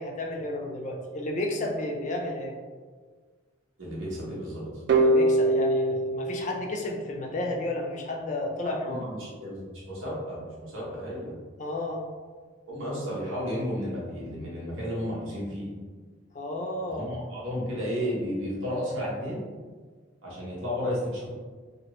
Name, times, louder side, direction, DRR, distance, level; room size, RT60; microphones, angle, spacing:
voice 1, 0.0-2.5 5.0-9.0 11.6-12.0 16.3-17.1, left 1 dB, 35° left, 1 dB, 0.4 m, -32 dB
voice 2, 3.8-4.6 8.6-11.3 12.7-15.7 16.9-19.4 20.2-21.3, equal, 85° right, -6 dB, 1.1 m, -33 dB
sound 1, 4.9-7.7, right 1 dB, 55° right, 0.3 m, -24 dB
3.0 x 2.4 x 3.0 m, 1.5 s
head